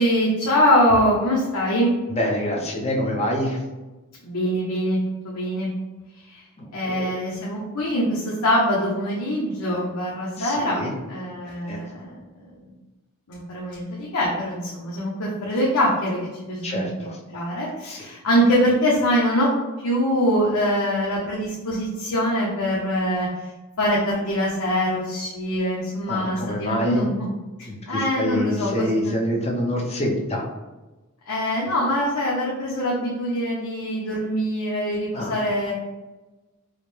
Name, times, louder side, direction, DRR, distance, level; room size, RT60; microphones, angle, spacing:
voice 1, 0.0-1.9 4.2-5.0 5.2-5.7 6.3-6.4 6.7-10.8 11.1-12.1 13.3-16.8 17.3-19.5 19.8-23.3 23.8-27.1 27.9-29.2 31.3-35.7, equal, 90° left, -5 dB, 0.8 m, -23 dB
voice 2, 2.1-3.6 6.6-7.1 10.4-10.9 11.4-11.8 16.6-17.2 17.8-18.1 26.1-27.1 27.6-30.4 35.1-35.4, left 1 dB, 30° left, -1 dB, 0.7 m, -26 dB
4.8 x 2.2 x 3.2 m, 1.1 s
head